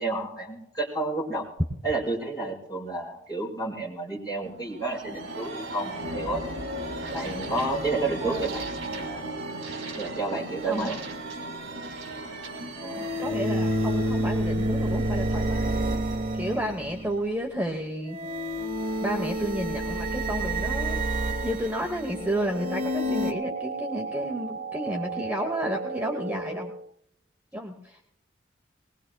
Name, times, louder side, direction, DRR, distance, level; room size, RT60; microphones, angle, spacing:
voice 1, 0.0-1.4 1.8-6.4 7.1-8.7 8.9-9.2 10.0-11.0 12.8-13.1, right 2 dB, 20° left, -4 dB, 4.5 m, -30 dB
sound 1, 4.4-15.9, right 1 dB, 85° right, 2.3 m, -36 dB
sound 2, 10.6-10.7 12.8-17.2 18.1-23.3, right 1 dB, 40° right, 1.1 m, -29 dB
voice 2, 13.2-15.8 16.3-18.2 19.0-21.0 21.4-26.7 27.5-28.0, right 1 dB, 10° right, 1 dB, 1.0 m, -31 dB
sound 3, 22.0-26.9, right 4 dB, 60° right, 0.7 m, -35 dB
20.0 x 20.0 x 2.3 m, 0.73 s
head